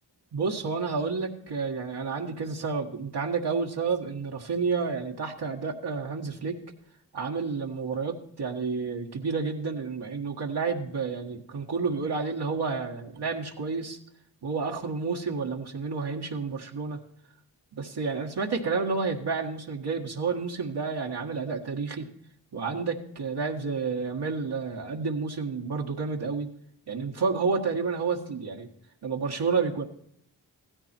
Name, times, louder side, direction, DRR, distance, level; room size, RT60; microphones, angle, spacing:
voice 1, 0.3-6.5 7.1-14.0 14.4-17.0 17.7-22.1 22.5-26.5 26.9-28.7 29.0-29.8, right 4 dB, 75° right, -1 dB, 1.6 m, -30 dB
15.5 x 13.5 x 4.4 m, 0.67 s
cardioid pair, 45°, 40 cm